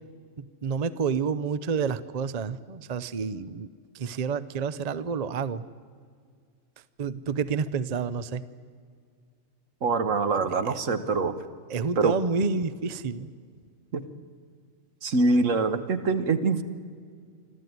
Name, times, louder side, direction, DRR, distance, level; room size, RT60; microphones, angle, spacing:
voice 1, 0.4-3.7 3.9-5.6 7.0-8.4 10.7-10.8 11.7-13.3, right 5 dB, 40° right, 15 dB, 0.7 m, -29 dB
voice 2, 9.8-11.4 12.0-12.1 13.9-14.0 15.0-16.6, right 3 dB, 75° right, 10 dB, 1.6 m, -24 dB
25.5 x 14.0 x 9.5 m, 2.1 s
omnidirectional pair, 1.4 m